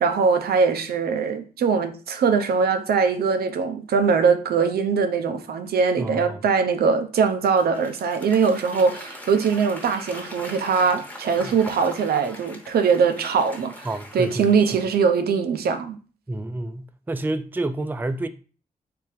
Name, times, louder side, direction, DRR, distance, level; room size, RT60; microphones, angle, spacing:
voice 1, 0.0-13.9 14.1-16.0, right 5 dB, 90° right, 0.5 m, -21 dB
voice 2, 6.0-6.4 11.4-11.6 13.8-14.7 16.3-18.3, right 2 dB, 10° right, 0.3 m, -29 dB
Applause / Crowd, 7.3-15.1, left 1 dB, 10° left, 0.9 m, -41 dB
3.4 x 3.3 x 3.0 m
cardioid pair, 70°, 16 cm